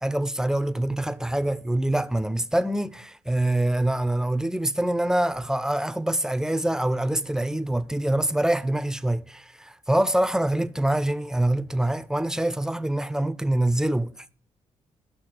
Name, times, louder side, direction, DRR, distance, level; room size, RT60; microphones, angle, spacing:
voice 1, 0.0-14.1, right 1 dB, 5° right, 0.6 m, -25 dB
12.5 x 6.1 x 5.8 m
hypercardioid pair, 45°, 14 cm